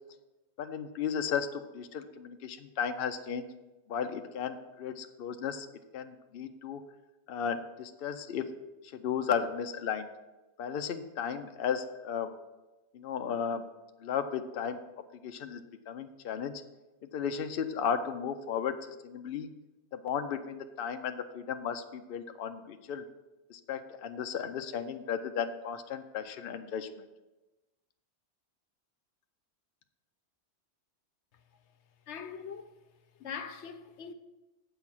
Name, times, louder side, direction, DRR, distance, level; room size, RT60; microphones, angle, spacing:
voice 1, 0.6-3.5 3.9-5.7 5.9-6.8 7.3-8.4 8.9-10.1 10.6-12.3 12.9-13.6 14.0-14.8 15.2-15.6 15.9-16.5 17.1-19.5 19.9-23.0 23.5-26.9, left 7 dB, 60° left, 0.8 m, -34 dB
voice 2, 32.1-32.7 33.2-34.1, left 6 dB, 80° left, 1.0 m, -41 dB
7.8 x 5.8 x 6.0 m
omnidirectional pair, 1.1 m